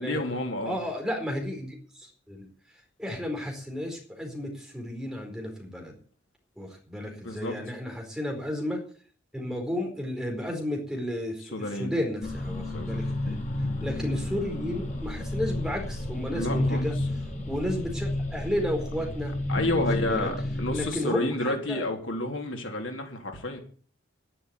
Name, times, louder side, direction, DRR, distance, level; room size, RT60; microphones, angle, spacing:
voice 1, 0.0-0.8 7.2-7.6 11.5-11.9 12.7-13.0 16.3-16.9 19.5-23.6, left 2 dB, 75° left, 2 dB, 3.7 m, -30 dB
voice 2, 0.6-2.5 3.0-6.0 6.6-8.8 9.3-13.4 13.8-16.9 17.5-19.3 19.7-20.3 20.7-21.8, left 1 dB, 5° right, 1 dB, 4.6 m, -33 dB
sound 1, 12.2-20.9, left 1 dB, 40° left, 4.1 m, -31 dB
11.5 x 11.5 x 8.4 m, 0.43 s
head